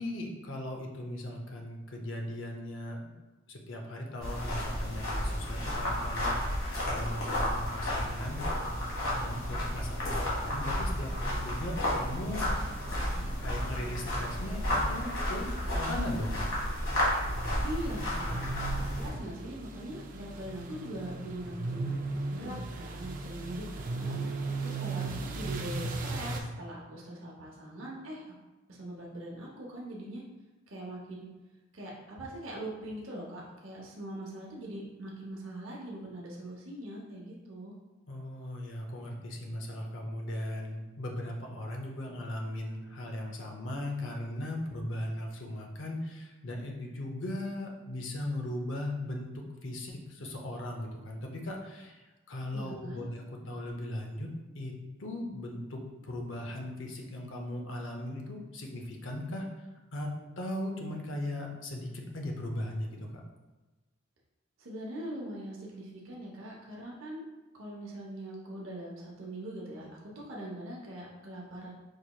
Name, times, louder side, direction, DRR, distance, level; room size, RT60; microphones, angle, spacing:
voice 1, 0.0-3.0 3.5-8.5 9.2-12.5 13.2-16.4 25.0-25.1 25.4-25.5 38.1-54.7 55.0-59.5 59.9-63.1, left 1 dB, 65° left, 1 dB, 0.6 m, -38 dB
sound 1, 4.2-19.1, left 1 dB, 90° left, 1.5 m, -32 dB
sound 2, 8.6-26.4, right 3 dB, 45° right, 0.4 m, -39 dB
voice 2, 17.6-18.5 18.9-22.0 22.3-24.3 24.6-25.1 25.3-28.3 28.7-30.2 30.7-31.3 31.7-37.7 52.5-53.0 64.6-67.2 67.5-71.7, right 1 dB, 80° right, -3 dB, 0.8 m, -42 dB
4.7 x 2.9 x 2.2 m, 1.2 s
head